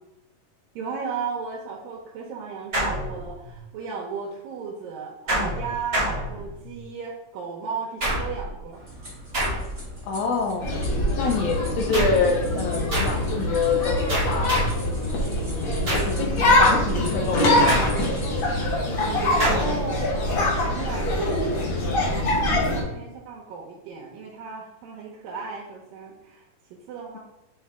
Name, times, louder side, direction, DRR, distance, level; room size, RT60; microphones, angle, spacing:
voice 1, 0.8-8.8 18.9-27.2, right 5 dB, 85° right, -2 dB, 2.6 m, -35 dB
sound 1, 2.7-3.6 5.3-6.8 8.0-8.6 9.3-10.0 11.9-12.3 12.9-13.3 14.1-14.9 15.9-16.3 17.7-18.3 19.4-19.8, right 1 dB, 70° right, 0.5 m, -27 dB
sound 2, 8.7-18.6, right 1 dB, 20° right, 1.4 m, -40 dB
voice 2, 10.0-10.7 11.2-14.6 15.4-18.1, left 4 dB, 80° left, 3 dB, 1.8 m, -26 dB
sound 3, 10.6-22.8, left 1 dB, 55° left, 1.5 m, -24 dB
6.5 x 4.2 x 3.5 m, 0.96 s
omnidirectional pair, 3.9 m